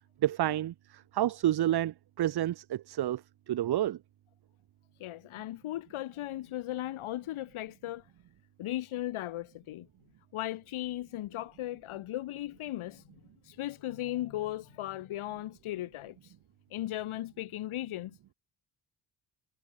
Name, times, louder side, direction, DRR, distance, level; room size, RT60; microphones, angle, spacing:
voice 1, 0.2-4.0, right 12 dB, 55° right, 0.9 m, -30 dB
voice 2, 5.0-8.1 8.6-9.9 10.3-13.0 13.4-16.3 16.7-18.2, left 14 dB, 85° left, 1.4 m, -37 dB
wide cardioid pair, 175°, 48 cm